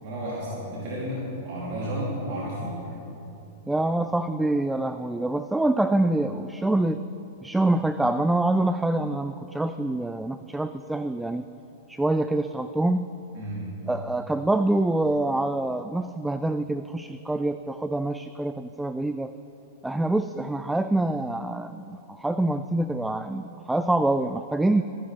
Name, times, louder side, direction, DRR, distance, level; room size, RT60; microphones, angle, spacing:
voice 1, 0.0-2.9 13.3-13.8, equal, 45° right, -6 dB, 3.0 m, -32 dB
voice 2, 3.7-7.0 7.4-11.5 11.9-13.1 13.9-19.3 19.8-24.8, right 2 dB, 5° right, 11 dB, 0.3 m, -25 dB
23.5 x 11.0 x 3.4 m, 2.8 s
figure-of-eight pair, 95°, 0 cm